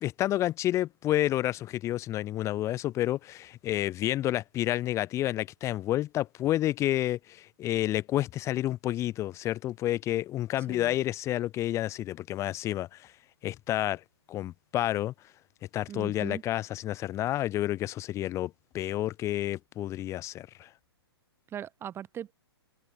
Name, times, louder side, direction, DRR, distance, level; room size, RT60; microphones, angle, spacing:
voice 1, 0.0-13.1 13.4-14.0 14.3-15.1 15.7-20.7, left 14 dB, 20° left, 1.2 m, -30 dB
voice 2, 15.9-16.4 21.5-22.3, right 10 dB, 20° right, 3.9 m, -39 dB
figure-of-eight pair, 120°, 13 cm